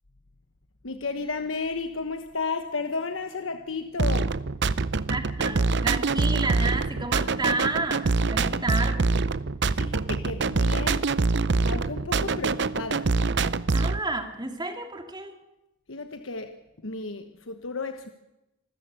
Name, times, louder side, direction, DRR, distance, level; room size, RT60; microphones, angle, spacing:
voice 1, 0.8-4.4 8.5-8.6 9.7-11.1 11.6-13.1 15.9-16.5 16.8-18.1, left 4 dB, 90° left, 7 dB, 1.2 m, -33 dB
sound 1, 4.0-14.0, right 3 dB, 60° right, 0.7 m, -25 dB
voice 2, 5.1-9.2 13.7-15.4, right 2 dB, 20° right, 5 dB, 2.3 m, -31 dB
26.0 x 14.0 x 8.0 m, 0.94 s
head